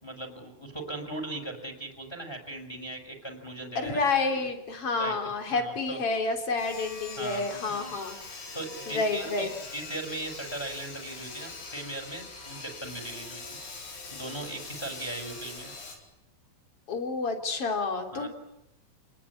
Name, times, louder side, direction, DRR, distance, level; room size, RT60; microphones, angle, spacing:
voice 1, 0.0-4.4 5.0-6.0 7.2-7.9 8.5-13.6 14.1-15.7 18.1-18.3, right 2 dB, 5° left, 4 dB, 5.4 m, -39 dB
voice 2, 3.8-8.2 8.9-9.5 16.9-18.3, left 3 dB, 35° left, 5 dB, 4.0 m, -29 dB
Sawing, 6.6-16.0, left 3 dB, 70° left, 6.5 m, -43 dB
29.0 x 20.5 x 9.8 m, 0.88 s
omnidirectional pair, 4.8 m